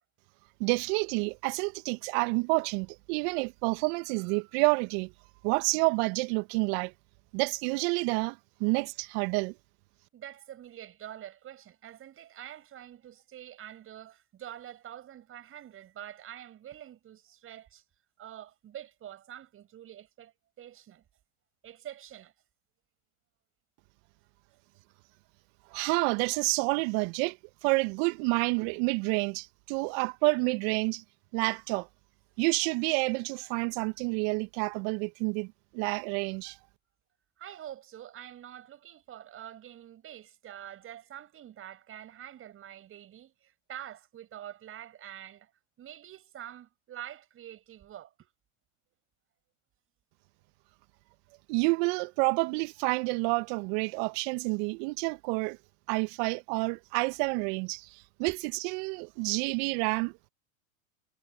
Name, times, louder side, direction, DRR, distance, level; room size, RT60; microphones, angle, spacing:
voice 1, 0.6-5.1 5.4-6.9 7.3-9.5 25.7-27.4 27.6-31.0 31.3-31.9 32.4-35.5 35.7-36.6 51.5-55.6 55.9-60.3, right 30 dB, 50° right, 2.0 m, -29 dB
voice 2, 10.1-17.8 18.2-21.0 21.6-22.3 37.4-45.5 45.8-48.3, right 11 dB, 30° right, 7.5 m, -46 dB
hypercardioid pair, 100°, 41 cm